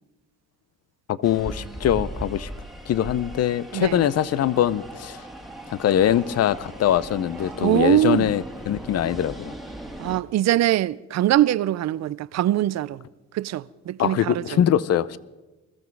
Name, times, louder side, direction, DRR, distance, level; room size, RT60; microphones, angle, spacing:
voice 1, 1.1-2.5 2.9-5.2 5.7-9.5 14.0-15.2, left 10 dB, 55° left, 0.6 m, -22 dB
sound 1, 1.2-10.2, right 1 dB, ahead, 1.8 m, -38 dB
voice 2, 3.7-4.1 7.6-8.3 10.0-13.0 13.3-14.6, right 13 dB, 60° right, 0.5 m, -22 dB
21.5 x 13.5 x 4.7 m
cardioid pair, 90°, 30 cm